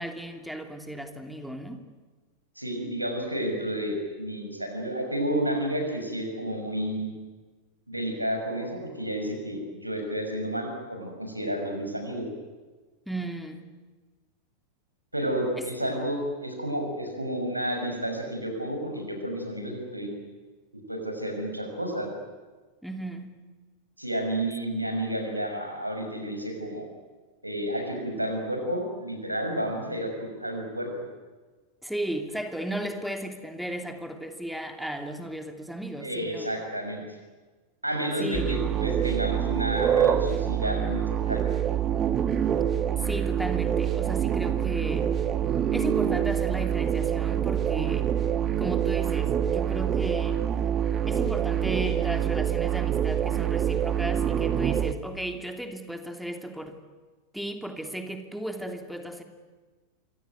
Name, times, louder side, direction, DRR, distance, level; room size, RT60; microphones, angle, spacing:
voice 1, 0.0-1.8 13.1-13.7 15.6-15.7 22.8-23.5 31.8-36.5 38.2-38.7 43.0-45.1 45.7-48.1 48.6-50.4 51.1-56.7 57.3-59.2, right 1 dB, ahead, 6 dB, 3.0 m, -35 dB
voice 2, 2.6-7.1 7.9-12.2 15.1-20.1 20.9-22.1 24.0-26.9 27.4-30.9 36.0-37.2 37.8-41.4, right 1 dB, 85° right, 4 dB, 6.4 m, -31 dB
sound 1, 38.3-54.9, right 9 dB, 25° right, 1.5 m, -26 dB
27.0 x 23.5 x 9.3 m, 1.3 s
figure-of-eight pair, 90°, 0 cm